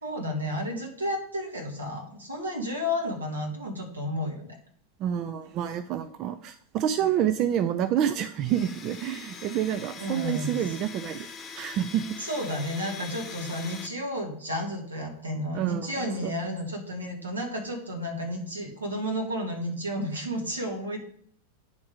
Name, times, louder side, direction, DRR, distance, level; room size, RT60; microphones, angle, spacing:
voice 1, 0.0-4.6 10.0-10.7 12.2-21.0, equal, 75° right, 1 dB, 1.6 m, -32 dB
voice 2, 5.0-11.3 11.5-12.2 15.5-16.3, right 10 dB, 35° right, 11 dB, 0.3 m, -28 dB
Domestic sounds home sounds, 8.4-13.9, left 5 dB, 20° left, 0.9 m, -42 dB
9.5 x 3.5 x 4.9 m, 0.63 s
figure-of-eight pair, 90°, 0 cm